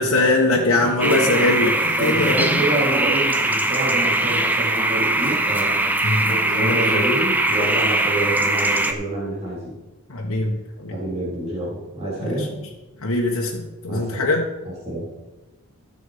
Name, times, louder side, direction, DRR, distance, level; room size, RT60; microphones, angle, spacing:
voice 1, 0.0-2.6 6.0-7.0 7.6-7.7 10.1-11.0 12.2-12.5 13.0-14.4, left 2 dB, 75° left, -2 dB, 1.2 m, -22 dB
voice 2, 0.8-1.4 2.0-5.9 6.3-9.8 10.9-12.5 13.9-14.3 14.6-15.1, right 1 dB, 30° right, -7 dB, 3.9 m, -27 dB
sound 1, 1.0-8.9, right 2 dB, 10° right, 0.6 m, -21 dB
13.5 x 7.0 x 5.0 m, 1.0 s
head